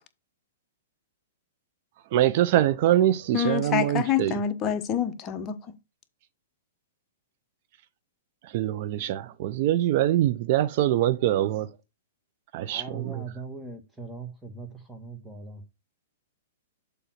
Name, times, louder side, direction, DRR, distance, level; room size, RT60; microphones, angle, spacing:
voice 1, 2.1-4.4 8.5-11.7 12.5-13.2, right 13 dB, 50° right, 0.7 m, -24 dB
voice 2, 3.3-5.6, left 8 dB, 25° left, 1.0 m, -27 dB
voice 3, 12.7-15.6, right 3 dB, 5° right, 1.8 m, -40 dB
7.0 x 3.6 x 5.9 m
hypercardioid pair, 135°, 0 cm